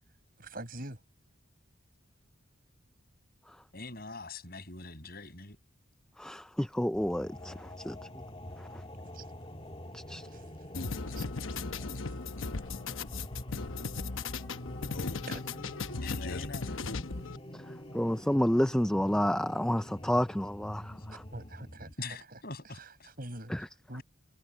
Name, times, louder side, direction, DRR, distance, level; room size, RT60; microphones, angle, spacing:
voice 1, 0.4-1.0 9.1-9.3 10.1-10.5 11.0-11.3 15.3-15.4 21.1-22.4 22.8-24.0, right 1 dB, 45° right, 7.2 m, -45 dB
voice 2, 3.7-5.6 16.0-16.8 22.0-23.1, left 3 dB, 45° left, 6.9 m, -43 dB
voice 3, 6.2-8.0 8.6-8.7 9.9-10.3 17.9-21.2 23.5-23.6, equal, 5° left, 0.4 m, -30 dB
sound 1, 6.9-21.9, equal, 25° left, 2.1 m, -46 dB
sound 2, 10.7-17.4, left 4 dB, 75° left, 1.0 m, -37 dB
head